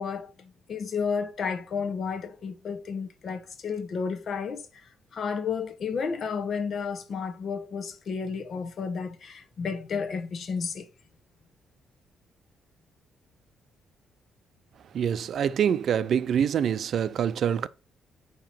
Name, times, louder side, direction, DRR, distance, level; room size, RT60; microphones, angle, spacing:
voice 1, 0.0-4.7 5.1-10.9, left 5 dB, 55° left, 0.9 m, -32 dB
voice 2, 14.9-17.7, right 8 dB, 65° right, 0.4 m, -25 dB
8.9 x 3.0 x 4.4 m
cardioid pair, 90°, 0 cm